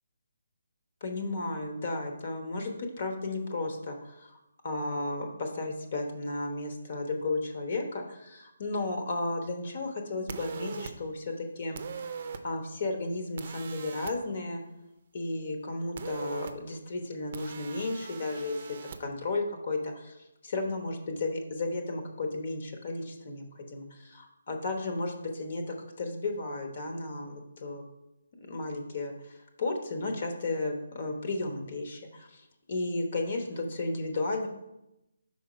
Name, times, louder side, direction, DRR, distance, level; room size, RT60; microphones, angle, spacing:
voice 1, 1.0-4.4 4.6-11.8 12.4-14.6 15.1-18.6 19.0-20.2 20.4-27.8 28.4-34.5, left 2 dB, 45° left, 4 dB, 1.0 m, -34 dB
sound 1, 10.3-10.9 11.7-12.4 13.4-14.1 16.0-16.5 17.3-19.0, right 5 dB, 45° right, 0.5 m, -40 dB
5.2 x 4.2 x 5.0 m, 0.89 s
figure-of-eight pair, 155°, 0 cm